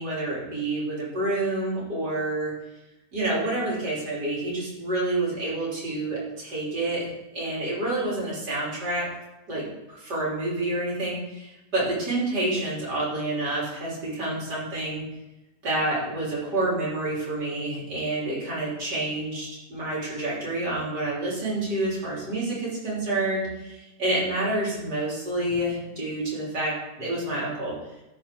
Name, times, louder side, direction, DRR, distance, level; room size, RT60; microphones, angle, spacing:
voice 1, 0.0-2.5 3.1-9.1 9.5-15.0 15.6-27.7, right 2 dB, 70° right, -6 dB, 4.0 m, -28 dB
13.5 x 5.2 x 3.8 m, 0.98 s
omnidirectional pair, 1.8 m